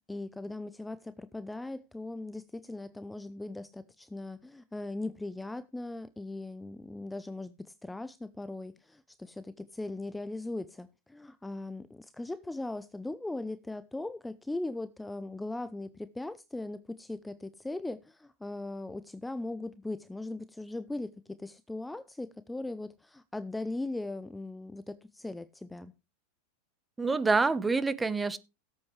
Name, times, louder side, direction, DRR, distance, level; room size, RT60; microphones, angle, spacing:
voice 1, 0.1-25.9, left 2 dB, 5° left, 0.7 m, -39 dB
voice 2, 27.0-28.4, right 4 dB, 15° right, 1.1 m, -26 dB
17.0 x 8.4 x 3.2 m
hypercardioid pair, 105°, 0 cm